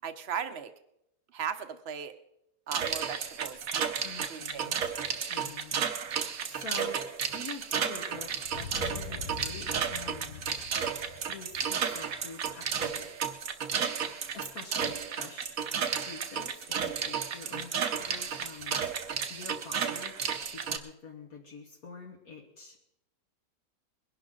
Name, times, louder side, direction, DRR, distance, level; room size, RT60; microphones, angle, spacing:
voice 1, 0.0-0.7 1.3-2.1 2.7-3.6 4.3-4.7, right 7 dB, 45° right, 9 dB, 1.1 m, -37 dB
sound 1, 2.7-20.8, right 7 dB, 60° right, 1.3 m, -33 dB
voice 2, 4.0-4.8 5.3-5.7 6.5-7.0 7.3-10.4 11.3-13.1 14.3-15.5 16.0-18.8 19.3-20.2 20.5-22.8, left 4 dB, 60° left, -1 dB, 2.0 m, -46 dB
sound 2, 8.4-13.0, left 6 dB, 90° left, 1.7 m, -44 dB
21.0 x 11.5 x 3.9 m, 0.79 s
omnidirectional pair, 1.7 m